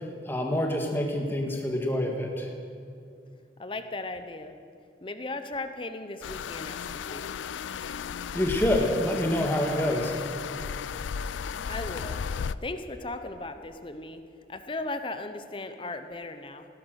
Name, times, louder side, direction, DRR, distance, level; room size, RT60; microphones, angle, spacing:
voice 1, 0.2-2.5 8.3-10.2, left 1 dB, 10° left, 2 dB, 1.6 m, -27 dB
voice 2, 3.6-4.6 5.0-7.3 11.7-12.2 12.6-14.2 14.5-16.7, left 2 dB, 30° left, 9 dB, 0.7 m, -37 dB
sound 1, 6.2-12.5, left 7 dB, 90° left, 0.4 m, -35 dB
16.5 x 11.5 x 6.4 m, 2.5 s
head